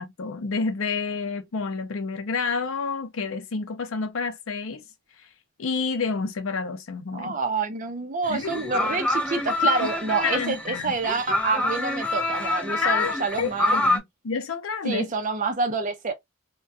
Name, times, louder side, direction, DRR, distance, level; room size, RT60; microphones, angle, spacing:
voice 1, 0.0-4.8 5.6-7.4 8.3-8.8 9.8-9.9 10.2-10.9 12.8-15.1, left 4 dB, 85° left, 0.5 m, -29 dB
voice 2, 7.1-13.8 14.8-16.1, right 4 dB, 40° right, 0.6 m, -27 dB
sound 1, 8.3-14.0, left 2 dB, 5° left, 0.4 m, -26 dB
2.3 x 2.2 x 2.5 m
head